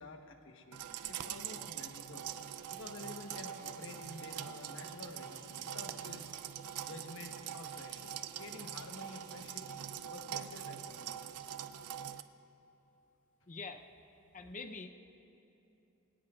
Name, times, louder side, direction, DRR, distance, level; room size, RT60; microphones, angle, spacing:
voice 1, 0.0-2.3 2.7-6.3 6.8-9.7 10.1-11.5, left 2 dB, 60° left, 4 dB, 1.2 m, -50 dB
sound 1, 0.7-12.2, right 10 dB, 85° right, 0.5 m, -43 dB
sound 2, 1.8-10.6, right 3 dB, 35° right, 3.0 m, -62 dB
voice 2, 13.5-13.9 14.3-14.9, left 3 dB, 35° left, 5 dB, 0.7 m, -44 dB
24.0 x 17.5 x 2.4 m, 2.9 s
head